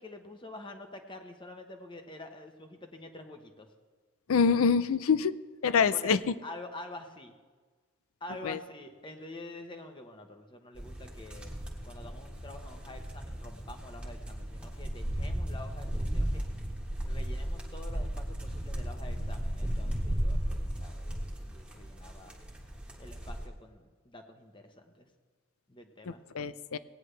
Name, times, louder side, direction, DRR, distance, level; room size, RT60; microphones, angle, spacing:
voice 1, 0.0-3.7 5.9-6.1 6.4-7.3 8.2-11.5 11.8-16.4 17.0-22.3 23.0-25.1 25.7-26.2, left 2 dB, 20° left, 5 dB, 1.0 m, -47 dB
voice 2, 4.3-5.3 5.6-6.2 8.4-8.6 26.1-26.8, left 6 dB, 80° left, 15 dB, 0.5 m, -25 dB
sound 1, 10.7-23.5, equal, 5° right, 1.4 m, -35 dB
18.0 x 9.6 x 3.3 m, 1.5 s
head